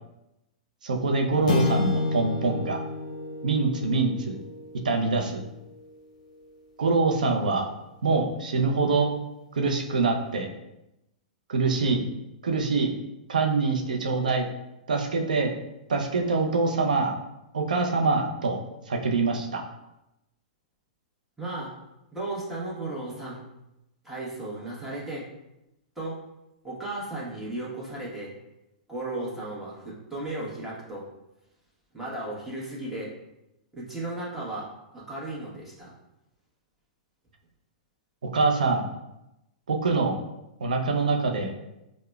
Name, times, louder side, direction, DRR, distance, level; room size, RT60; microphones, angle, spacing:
voice 1, 0.8-2.8 3.4-4.4 4.8-5.4 6.8-7.7 8.0-9.1 9.5-10.5 11.5-12.0 12.4-12.9 13.3-14.5 14.9-15.5 15.9-17.2 17.5-18.6 18.9-19.6 38.3-38.8 39.7-40.2 40.6-41.5, right 3 dB, 85° right, 3 dB, 0.5 m, -24 dB
sound 1, 1.5-5.9, left 2 dB, 65° left, 0.5 m, -30 dB
voice 2, 21.4-21.7 22.1-23.4 24.0-25.2 26.0-26.1 26.6-28.3 28.9-31.0 31.9-33.1 33.7-35.9, right 2 dB, 5° right, -6 dB, 1.1 m, -35 dB
4.8 x 2.1 x 2.2 m, 0.89 s
hypercardioid pair, 115°, 4 cm